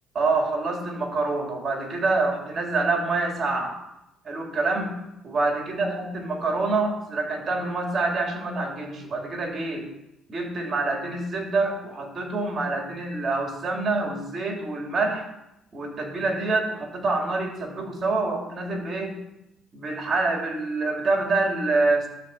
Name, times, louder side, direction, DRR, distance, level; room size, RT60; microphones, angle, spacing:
voice 1, 0.1-3.8 4.2-5.0 5.2-9.9 10.3-15.3 15.7-19.2 19.7-22.1, right 3 dB, 35° right, 1 dB, 2.7 m, -26 dB
11.5 x 4.2 x 7.8 m, 0.87 s
cardioid pair, 120°, 0 cm